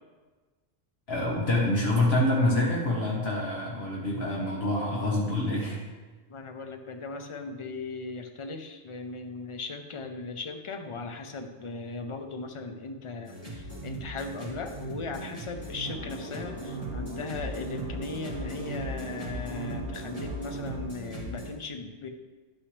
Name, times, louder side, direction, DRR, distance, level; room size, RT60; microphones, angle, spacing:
voice 1, 1.1-5.8, left 1 dB, 60° left, -3 dB, 1.4 m, -26 dB
voice 2, 6.3-22.1, left 3 dB, 40° left, 5 dB, 0.5 m, -38 dB
sound 1, 13.3-21.5, right 1 dB, 20° left, 2.1 m, -38 dB
sound 2, 15.8-20.9, right 2 dB, 60° right, 1.1 m, -42 dB
9.8 x 5.9 x 3.2 m, 1.3 s
omnidirectional pair, 1.2 m